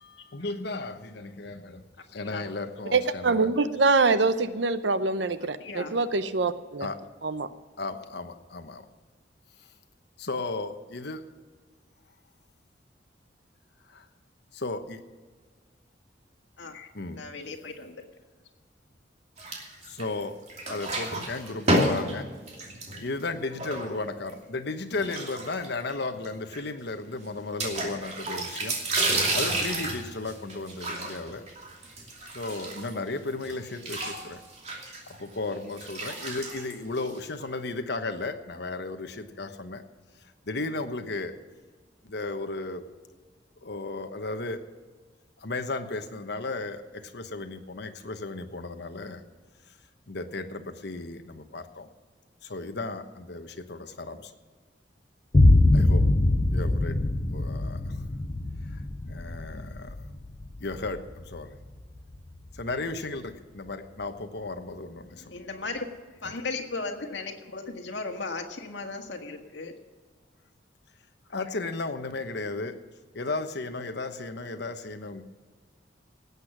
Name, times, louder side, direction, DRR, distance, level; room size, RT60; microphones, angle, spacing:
voice 1, 0.0-3.5 6.8-7.0 7.8-8.9 9.6-9.7 10.2-11.2 13.9-14.1 14.5-15.0 16.9-17.2 19.8-20.4 20.7-22.3 23.0-28.8 29.3-31.4 32.3-34.4 35.1-39.8 40.4-41.3 42.0-42.8 43.6-44.6 45.4-49.2 49.7-49.8 50.1-51.9 52.4-54.3 55.7-56.1 56.5-57.0 57.3-58.0 58.7-60.0 60.6-61.5 62.5-65.3 71.3-72.8 73.1-75.2, left 3 dB, 65° left, 8 dB, 1.1 m, -35 dB
voice 2, 2.9-6.9 7.2-7.5, right 3 dB, 70° right, 12 dB, 0.8 m, -24 dB
voice 3, 5.6-6.0 16.6-16.9 17.2-18.0 65.3-65.8 66.2-69.7, left 3 dB, 80° left, 3 dB, 1.8 m, -36 dB
sound 1, 19.4-20.2 20.5-24.3 24.9-25.9 26.2-26.3 26.5-26.6 27.6-33.1 33.4-37.4, right 1 dB, 40° right, 2.7 m, -31 dB
sound 2, 55.3-62.7, left 2 dB, 35° left, 0.6 m, -24 dB
18.0 x 8.4 x 6.0 m, 1.5 s
head